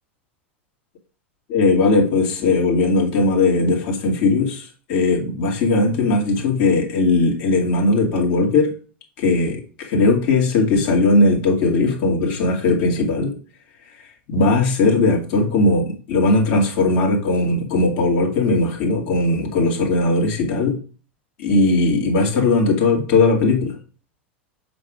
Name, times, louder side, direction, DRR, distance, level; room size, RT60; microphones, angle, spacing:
voice 1, 1.5-8.7 9.2-13.3 14.3-20.8 21.4-23.8, left 3 dB, 55° left, 0 dB, 2.2 m, -18 dB
6.0 x 3.8 x 4.9 m, 0.39 s
figure-of-eight pair, 90°, 6 cm